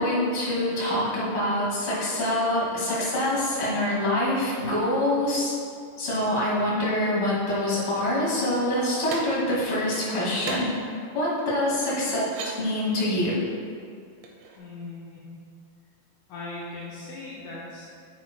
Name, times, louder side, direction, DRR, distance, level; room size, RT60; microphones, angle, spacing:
voice 1, 0.0-5.5 6.0-10.7 11.1-13.4, left 1 dB, 40° left, -7 dB, 2.5 m, -25 dB
sound 1, 9.1-9.2 10.4-10.6 11.4-11.5 12.1-12.5 14.2-14.6, right 4 dB, 75° right, 1.6 m, -35 dB
voice 2, 14.6-15.2 16.3-17.8, left 2 dB, 70° left, -6 dB, 2.2 m, -39 dB
9.7 x 8.7 x 2.2 m, 2.3 s
omnidirectional pair, 4.2 m